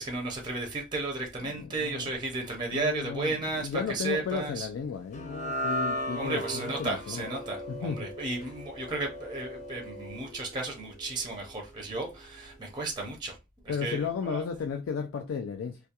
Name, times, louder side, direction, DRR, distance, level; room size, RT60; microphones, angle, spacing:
voice 1, 0.0-4.7 6.1-13.4 13.6-14.4, right 2 dB, 25° right, 0.5 m, -34 dB
voice 2, 1.4-2.1 2.7-7.2 7.7-8.0 13.7-15.8, left 6 dB, 85° left, 0.3 m, -34 dB
sound 1, 5.1-11.5, equal, 40° left, 0.6 m, -37 dB
2.3 x 2.2 x 2.8 m
head